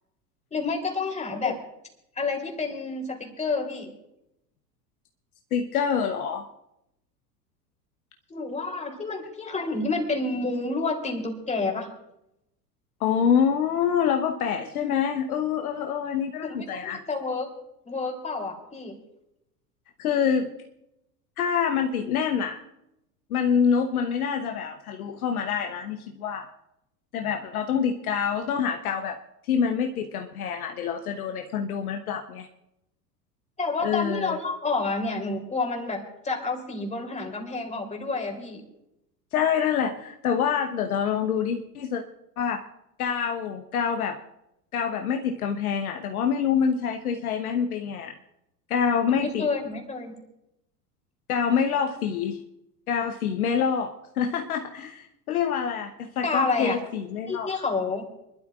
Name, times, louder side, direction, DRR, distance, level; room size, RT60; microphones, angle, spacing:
voice 1, 0.5-1.6 2.2-3.9 8.3-11.9 16.4-17.5 17.8-19.0 33.6-38.6 49.1-50.1 56.2-56.8 57.3-58.0, left 3 dB, 15° left, 2 dB, 3.2 m, -29 dB
voice 2, 5.5-6.4 13.0-17.0 20.0-20.5 21.4-22.6 23.3-26.5 27.1-29.2 29.5-32.5 33.8-34.4 39.3-42.0 42.4-42.6 43.0-44.2 44.7-48.1 48.7-49.5 51.3-52.4 52.9-57.5, left 7 dB, 60° left, 4 dB, 1.1 m, -26 dB
27.5 x 12.0 x 2.4 m, 0.84 s
figure-of-eight pair, 80°, 49 cm